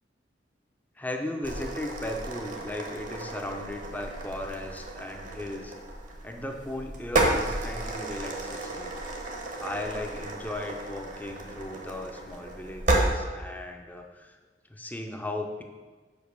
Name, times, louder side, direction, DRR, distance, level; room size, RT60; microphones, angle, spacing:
voice 1, 1.0-5.7 6.2-8.9 9.6-14.4 14.7-15.6, left 1 dB, 10° left, 3 dB, 0.7 m, -36 dB
sound 1, 1.4-13.1, right 2 dB, 45° right, 1.2 m, -32 dB
5.2 x 5.2 x 6.5 m, 1.3 s
head